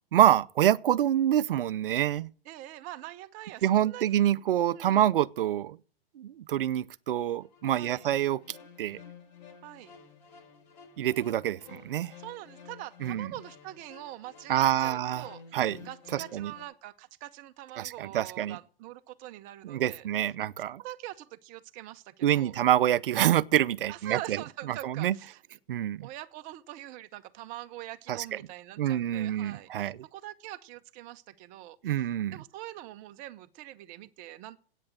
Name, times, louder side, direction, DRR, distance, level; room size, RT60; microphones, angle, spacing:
voice 1, 0.1-2.3 3.6-5.8 6.2-8.4 8.8-9.0 11.0-12.1 13.0-13.3 14.5-15.2 15.5-15.8 16.3-16.5 17.8-18.6 19.6-20.8 22.2-24.4 24.8-25.2 25.7-26.1 28.1-28.2 28.8-30.0 31.8-32.4, right 11 dB, 65° right, 0.6 m, -26 dB
voice 2, 2.4-4.1 4.7-5.1 7.7-8.1 9.6-9.9 12.2-15.4 15.8-20.1 20.6-22.6 23.9-25.6 26.0-32.0 32.3-34.6, right 15 dB, 25° right, 0.7 m, -44 dB
sound 1, 7.4-16.6, left 6 dB, 45° left, 4.1 m, -52 dB
9.0 x 8.5 x 8.7 m
hypercardioid pair, 125°, 30 cm